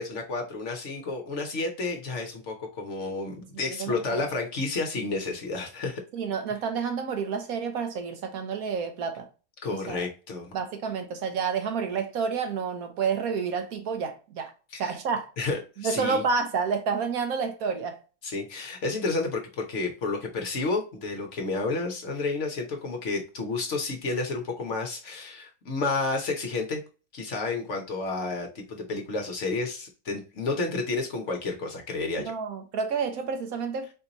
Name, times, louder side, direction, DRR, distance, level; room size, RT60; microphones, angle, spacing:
voice 1, 0.0-6.0 9.6-10.5 14.7-15.0 15.4-16.2 18.2-26.8 27.1-32.3, left 3 dB, 55° left, 1.0 m, -31 dB
voice 2, 3.5-4.3 6.1-9.2 9.9-10.1 10.5-14.5 14.8-15.3 15.8-18.0 32.2-33.9, right 5 dB, 70° right, 1.1 m, -29 dB
4.5 x 2.8 x 3.9 m
omnidirectional pair, 1.7 m